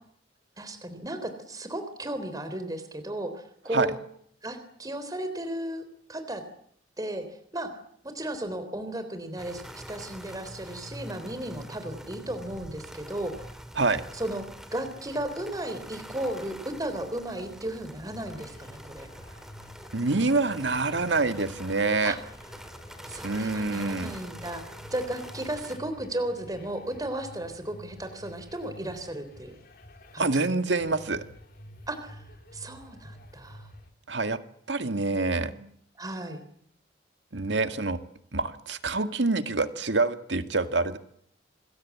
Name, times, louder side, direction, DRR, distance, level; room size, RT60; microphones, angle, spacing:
voice 1, 0.6-4.0 4.4-5.8 6.1-6.4 7.0-7.2 7.5-7.7 8.0-13.5 14.1-14.4 14.7-19.1 22.0-22.2 23.0-24.6 24.9-29.6 30.1-30.3 31.9-32.2 32.5-33.7 34.9-35.6 36.0-36.4, right 1 dB, 20° right, 8 dB, 3.7 m, -35 dB
sound 1, 9.4-25.8, equal, 5° right, 2.6 m, -45 dB
sound 2, 18.1-33.9, left 1 dB, 55° left, 3.8 m, -49 dB
voice 2, 19.9-22.1 23.2-24.2 30.2-31.2 34.1-34.4 34.7-35.5 37.3-38.0 38.3-41.0, right 3 dB, 70° right, 9 dB, 2.0 m, -26 dB
27.5 x 21.5 x 8.4 m, 0.67 s
head